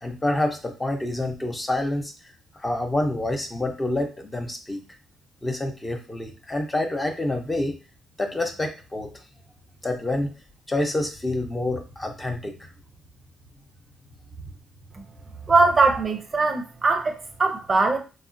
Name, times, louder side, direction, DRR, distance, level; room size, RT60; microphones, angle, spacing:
voice 1, 0.0-2.1 2.5-4.8 5.4-7.7 8.2-9.1 9.8-10.3 10.7-12.7, left 1 dB, 20° left, 4 dB, 0.6 m, -27 dB
voice 2, 15.5-18.0, right 3 dB, 35° right, 5 dB, 0.5 m, -21 dB
3.5 x 2.1 x 2.5 m, 0.32 s
cardioid pair, 90°, 0 cm